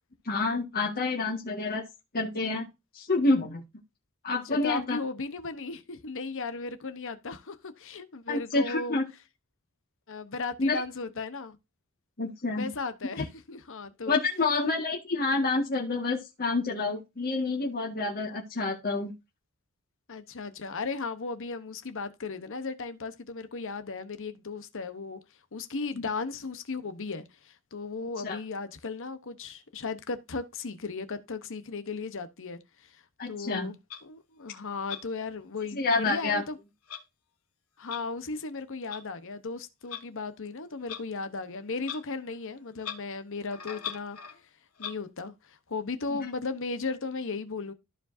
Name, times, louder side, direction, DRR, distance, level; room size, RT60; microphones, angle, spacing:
voice 1, 0.3-1.8 2.1-2.7 2.9-3.6 4.2-5.0 8.3-9.0 10.6-10.8 12.2-12.7 14.1-19.1 28.2-28.4 33.2-33.7 35.7-36.4, left 3 dB, 45° left, 1.8 m, -28 dB
voice 2, 4.3-9.0 10.1-11.6 12.5-14.2 20.1-25.2 25.5-33.8 34.0-36.6 37.8-44.2 44.8-47.7, left 4 dB, 60° left, 1.0 m, -36 dB
Clock, 33.9-34.0 34.9-35.0 35.9-36.0 36.9-37.0 37.9-38.0 38.9-39.0 39.9-40.0 40.9-41.0 41.8-42.0 42.3-42.4 42.8-43.0 43.5-44.4 44.8-44.9, left 9 dB, 90° left, 1.7 m, -39 dB
14.5 x 4.8 x 2.7 m
head